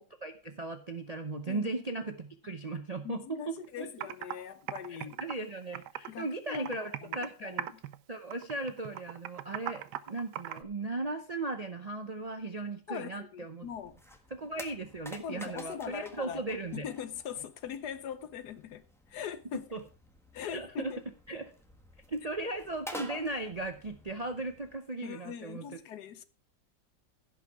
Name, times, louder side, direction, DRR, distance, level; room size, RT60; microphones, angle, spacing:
voice 1, 0.0-4.1 4.9-7.7 8.1-13.7 14.3-16.9 19.7-19.8 20.5-20.9 21.3-21.5 22.1-25.8, right 2 dB, 45° right, 0.5 m, -37 dB
voice 2, 3.0-5.2 6.1-7.8 12.9-14.0 15.2-16.4 16.7-19.7 20.3-21.0 25.0-26.2, left 9 dB, 70° left, 1.3 m, -41 dB
Computer keyboard, 3.6-3.7 4.0-4.3 4.7-6.2 6.5-7.3 7.6-8.0 8.3-10.6, right 12 dB, 75° right, 1.2 m, -38 dB
sound 1, 13.6-24.8, equal, ahead, 1.4 m, -50 dB
16.0 x 5.8 x 4.7 m
omnidirectional pair, 1.8 m